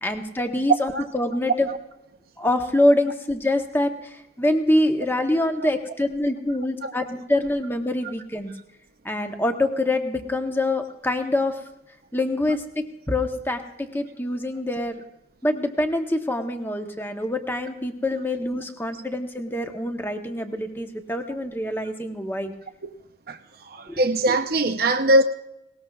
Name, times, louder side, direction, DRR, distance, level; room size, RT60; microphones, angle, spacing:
voice 1, 0.0-1.7 2.4-3.9 4.4-8.5 9.0-11.6 12.1-15.0 15.4-22.5 23.9-24.0, left 1 dB, 10° left, 1.0 m, -25 dB
voice 2, 23.3-25.2, right 1 dB, 50° right, 0.7 m, -22 dB
19.5 x 18.5 x 2.4 m
head